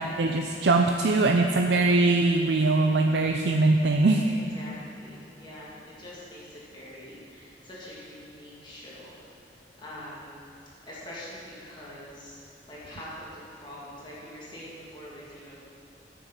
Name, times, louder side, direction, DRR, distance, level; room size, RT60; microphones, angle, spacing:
voice 1, 0.0-4.3, right 3 dB, 75° right, 3 dB, 0.5 m, -22 dB
voice 2, 4.2-6.4 6.7-9.1 9.8-10.4 10.9-12.4 12.7-15.6, left 1 dB, 25° left, -7 dB, 2.0 m, -44 dB
9.9 x 8.6 x 5.2 m, 2.7 s
head